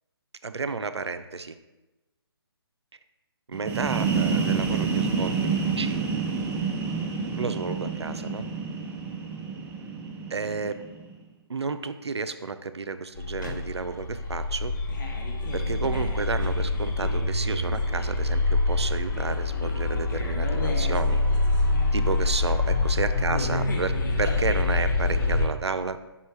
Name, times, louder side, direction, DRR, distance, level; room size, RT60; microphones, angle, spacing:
voice 1, 0.4-1.6 3.5-6.1 7.4-8.5 10.3-10.8 11.5-14.7 15.5-21.2 21.9-26.0, right 4 dB, 85° right, 10 dB, 0.5 m, -31 dB
sound 1, 3.5-11.1, right 5 dB, 10° right, 0.4 m, -28 dB
sound 2, 13.2-25.5, left 2 dB, 45° left, 0.8 m, -25 dB
5.5 x 3.2 x 5.6 m, 1.1 s
figure-of-eight pair, 140°, 14 cm